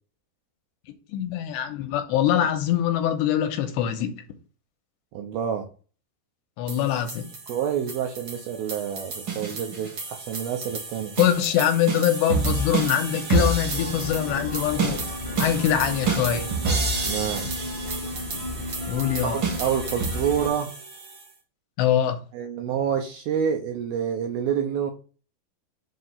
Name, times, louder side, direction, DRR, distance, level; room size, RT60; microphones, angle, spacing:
voice 1, 1.1-4.2 6.6-7.3 11.2-15.0 15.4-16.5 18.9-19.4 21.8-22.2, left 10 dB, 80° left, 2.9 m, -23 dB
voice 2, 5.1-5.7 7.5-11.1 17.0-17.7 19.2-20.7 22.3-24.9, right 8 dB, 80° right, 2.2 m, -28 dB
sound 1, 6.7-21.2, right 4 dB, 55° right, 1.4 m, -30 dB
sound 2, 13.6-20.5, left 1 dB, 20° left, 0.8 m, -34 dB
7.6 x 2.9 x 5.5 m
omnidirectional pair, 5.0 m